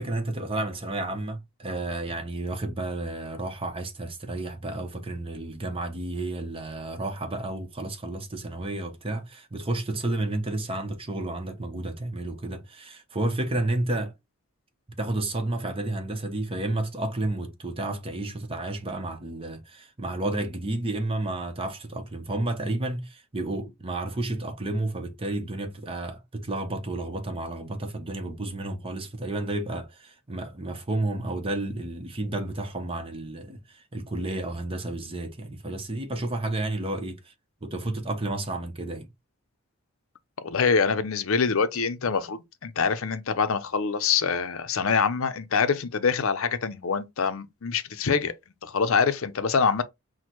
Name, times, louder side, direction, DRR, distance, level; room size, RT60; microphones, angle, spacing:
voice 1, 0.0-14.1 15.0-37.3 37.6-39.1, right 2 dB, 25° right, 0.7 m, -31 dB
voice 2, 40.4-48.3 48.6-49.8, left 5 dB, 65° left, 0.6 m, -25 dB
6.1 x 2.1 x 3.0 m
head